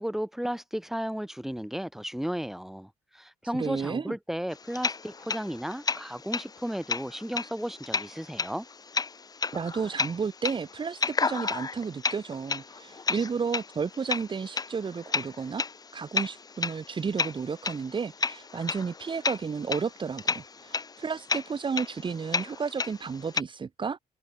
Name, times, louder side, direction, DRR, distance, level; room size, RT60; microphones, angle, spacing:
voice 1, 0.0-8.7, equal, ahead, 8.0 m, -34 dB
voice 2, 3.5-4.1 9.5-15.7 15.9-24.0, right 5 dB, 30° right, 3.4 m, -32 dB
sound 1, 4.5-23.4, left 4 dB, 25° left, 1.4 m, -33 dB
cardioid pair, 140°, 15 cm